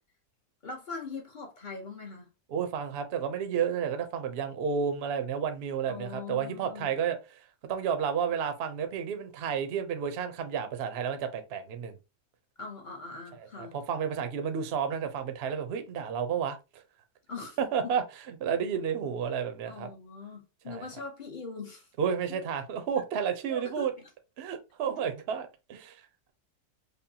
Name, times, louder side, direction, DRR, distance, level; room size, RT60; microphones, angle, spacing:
voice 1, 0.6-2.3 5.9-6.9 12.6-13.7 17.3-17.6 18.5-18.8 19.7-21.9 22.3-22.4 23.5-24.1, left 4 dB, 40° left, 0.7 m, -41 dB
voice 2, 2.5-12.0 13.6-16.8 17.6-19.9 20.7-20.8 22.0-23.9 24.4-26.0, right 7 dB, 55° right, 0.7 m, -31 dB
5.2 x 2.2 x 2.8 m
omnidirectional pair, 1.7 m